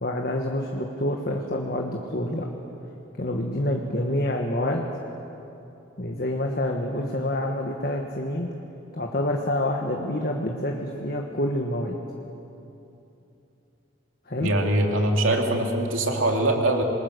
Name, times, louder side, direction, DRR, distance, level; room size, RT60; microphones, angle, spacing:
voice 1, 0.0-2.5 3.2-4.8 6.0-8.5 8.9-12.0 14.3-14.5, left 1 dB, 45° left, 1 dB, 1.5 m, -27 dB
voice 2, 14.4-16.8, right 1 dB, 70° right, 2 dB, 2.7 m, -22 dB
27.5 x 21.0 x 6.7 m, 2.9 s
head